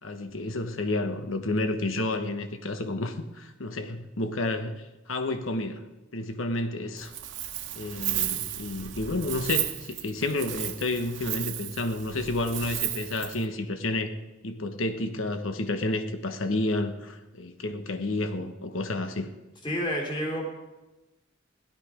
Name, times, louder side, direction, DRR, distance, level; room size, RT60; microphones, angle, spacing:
voice 1, 0.0-7.1 7.7-14.1 14.4-19.3, left 2 dB, 80° left, 8 dB, 1.1 m, -30 dB
Wind, 7.0-13.4, right 12 dB, 65° right, 1.2 m, -34 dB
voice 2, 19.6-20.5, equal, 25° left, -1 dB, 3.5 m, -29 dB
16.5 x 11.5 x 5.0 m, 1.0 s
head